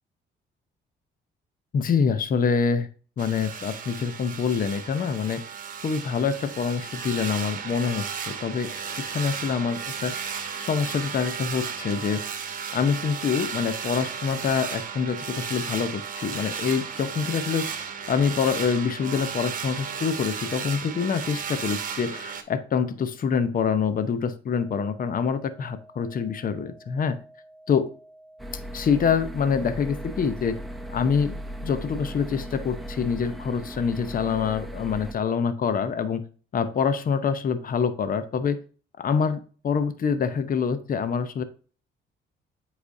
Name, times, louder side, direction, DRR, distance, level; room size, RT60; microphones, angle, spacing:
voice 1, 1.7-2.9 3.2-5.4 5.8-8.7 9.0-10.3 10.7-12.2 12.7-27.2 27.7-27.9 28.7-30.6 30.9-31.4 31.6-36.2 36.5-38.6 39.0-41.4, left 6 dB, 45° left, 12 dB, 0.7 m, -26 dB
sound 1, 3.2-22.4, right 7 dB, 45° right, 1.0 m, -34 dB
sound 2, 24.4-34.5, right 1 dB, 30° left, 3.1 m, -52 dB
sound 3, 28.4-35.1, equal, ahead, 0.8 m, -37 dB
7.8 x 5.0 x 2.7 m, 0.39 s
cardioid pair, 90°, 20 cm